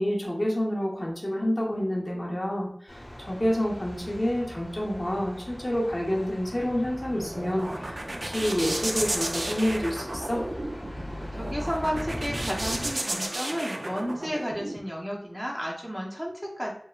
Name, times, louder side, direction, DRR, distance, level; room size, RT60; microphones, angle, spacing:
voice 1, 0.0-10.5, equal, 45° left, -3 dB, 0.6 m, -28 dB
Thunder, 2.9-12.9, equal, 85° left, 0.8 m, -40 dB
sound 1, 6.9-14.8, right 1 dB, 75° right, 0.3 m, -33 dB
voice 2, 11.4-16.7, equal, 10° right, -3 dB, 0.6 m, -32 dB
3.0 x 2.0 x 2.3 m, 0.62 s
wide cardioid pair, 45°, 0 cm